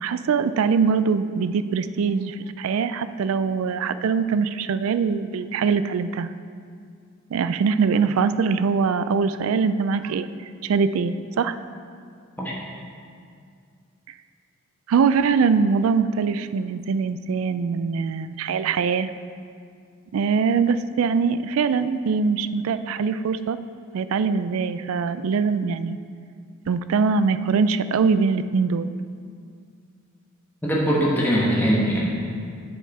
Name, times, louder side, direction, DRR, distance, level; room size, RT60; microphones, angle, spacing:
voice 1, 0.0-6.3 7.3-10.3 10.6-11.6 14.9-19.1 20.1-23.6 23.9-26.0 26.7-28.9, right 5 dB, 70° right, 12 dB, 0.3 m, -22 dB
voice 2, 30.6-32.1, equal, 10° left, -5 dB, 1.1 m, -21 dB
8.5 x 6.9 x 4.1 m, 2.2 s
head